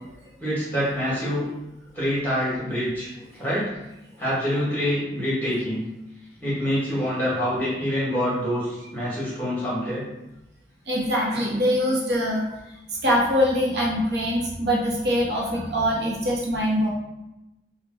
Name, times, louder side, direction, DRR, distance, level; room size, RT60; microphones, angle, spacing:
voice 1, 0.4-1.5 1.9-3.7 4.2-5.8 6.4-10.0, equal, 10° left, -8 dB, 1.5 m, -26 dB
voice 2, 10.9-12.4 13.0-16.9, equal, 65° right, -4 dB, 0.9 m, -23 dB
3.6 x 2.3 x 4.3 m, 0.95 s
head